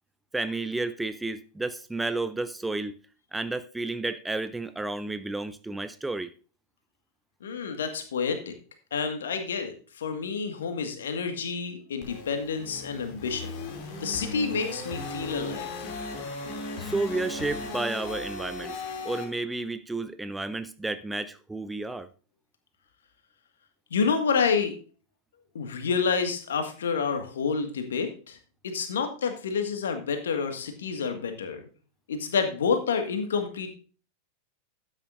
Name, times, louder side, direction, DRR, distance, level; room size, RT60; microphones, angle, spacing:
voice 1, 0.3-3.0 3.3-6.3 16.8-22.1, right 2 dB, 5° right, 0.6 m, -31 dB
voice 2, 7.4-8.5 8.9-13.5 14.0-15.9 23.9-24.8 25.5-28.4 28.6-31.6 32.1-33.7, left 5 dB, 65° left, 1.8 m, -29 dB
sound 1, 12.0-19.2, left 3 dB, 45° left, 2.7 m, -37 dB
12.5 x 9.1 x 2.6 m
figure-of-eight pair, 90°, 0 cm